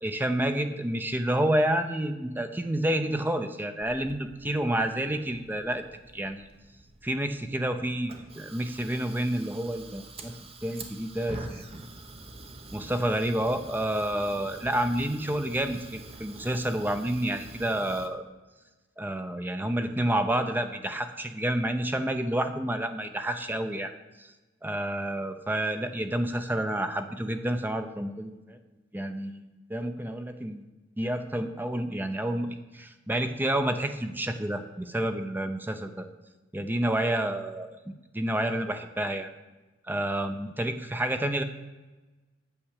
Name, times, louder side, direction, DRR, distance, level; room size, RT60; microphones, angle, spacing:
voice 1, 0.0-5.8 6.1-6.5 7.0-10.4 10.6-11.6 12.7-18.2 19.0-23.9 24.2-24.3 24.6-28.6 28.9-29.4 29.7-30.6 31.0-36.1 36.5-39.3 39.9-41.4, right 1 dB, 10° right, 7 dB, 0.6 m, -29 dB
Fire, 3.8-18.1, right 2 dB, 30° right, 0.9 m, -46 dB
8.8 x 7.1 x 6.4 m, 1.1 s
head